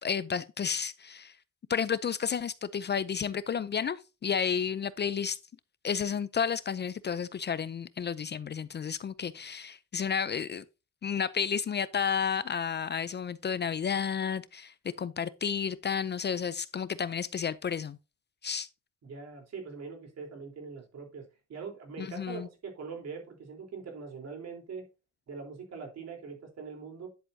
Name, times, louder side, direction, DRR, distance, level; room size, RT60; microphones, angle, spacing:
voice 1, 0.0-1.3 1.7-5.4 5.8-10.6 11.0-18.0 18.4-18.7 22.0-22.5, left 7 dB, 35° left, 0.5 m, -31 dB
voice 2, 19.0-24.8 25.3-27.1, right 5 dB, 60° right, 3.8 m, -42 dB
10.0 x 7.7 x 2.7 m
cardioid pair, 90°, 30 cm